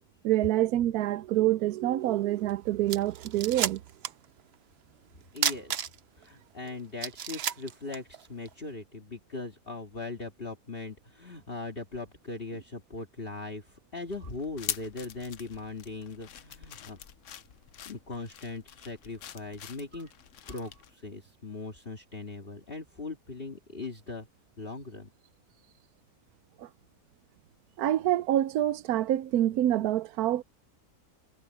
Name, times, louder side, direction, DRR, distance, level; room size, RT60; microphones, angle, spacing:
voice 1, 0.2-3.8 26.6-26.7 27.8-30.4, right 13 dB, 85° right, 1.1 m, -26 dB
sound 1, 2.5-2.6 2.9-4.2 4.5-4.6 5.4-6.2 6.6-6.7 7.0-8.5, right 9 dB, 55° right, 0.8 m, -31 dB
voice 2, 5.3-5.8 6.1-17.0 17.9-20.1 20.5-24.3 24.6-25.1, left 3 dB, 40° left, 2.3 m, -40 dB
sound 2, 14.1-20.9, left 9 dB, 60° left, 1.1 m, -44 dB
omnidirectional pair, 1.6 m